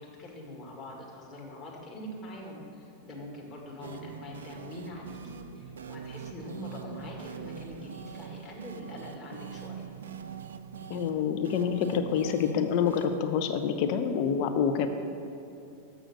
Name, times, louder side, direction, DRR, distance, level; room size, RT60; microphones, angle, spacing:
voice 1, 0.0-9.9, left 1 dB, 30° left, -3 dB, 1.8 m, -43 dB
sound 1, 3.8-13.2, right 7 dB, 65° right, 0.3 m, -43 dB
voice 2, 10.9-14.9, left 7 dB, 45° left, 7 dB, 0.6 m, -27 dB
6.7 x 6.2 x 6.3 m, 2.7 s
figure-of-eight pair, 90°, 0 cm